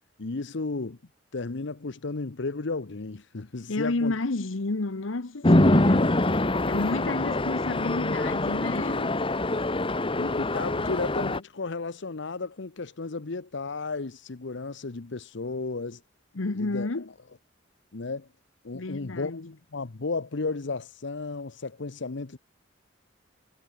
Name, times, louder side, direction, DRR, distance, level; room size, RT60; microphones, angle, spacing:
voice 1, 0.2-1.0 1.3-4.1 10.2-16.0 16.5-16.9 17.9-18.3 18.6-19.4 19.7-22.4, left 3 dB, 65° left, 0.9 m, -33 dB
voice 2, 3.7-6.2 6.7-9.2 16.3-17.1 18.7-19.5, left 2 dB, 85° left, 1.1 m, -31 dB
Chatter / Traffic noise roadway noise / Train, 5.4-11.4, left 1 dB, 25° left, 1.4 m, -24 dB
head